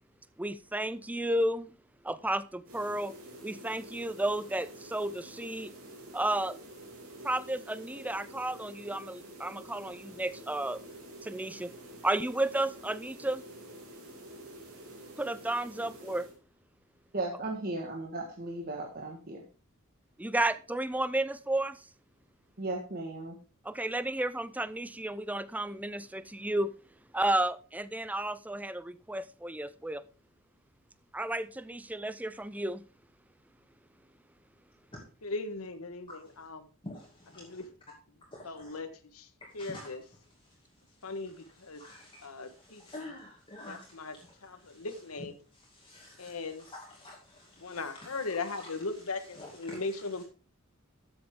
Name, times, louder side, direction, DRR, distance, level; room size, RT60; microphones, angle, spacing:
voice 1, 0.4-1.8 2.0-3.1 3.4-5.7 6.1-6.6 7.2-10.8 11.2-11.7 12.0-13.4 15.2-16.3 20.2-21.8 23.6-26.7 27.1-30.0 31.1-32.8, right 1 dB, 5° right, 0.5 m, -32 dB
sound 1, 2.6-16.4, right 1 dB, 85° right, 3.6 m, -48 dB
voice 2, 17.1-19.4 22.6-23.4, right 2 dB, 45° right, 1.6 m, -36 dB
voice 3, 35.2-36.6 37.4-37.6 38.4-38.9 39.1-39.3 39.5-40.0 41.0-41.8 42.2-43.1 43.7-44.1 44.4-45.3 46.2-46.6 47.6-50.2, left 3 dB, 90° left, 1.4 m, -38 dB
voice 4, 36.1-36.5 36.8-37.7 38.3-38.8 39.5-45.3 45.5-50.2, left 1 dB, 25° left, 2.3 m, -50 dB
12.5 x 7.9 x 3.7 m
head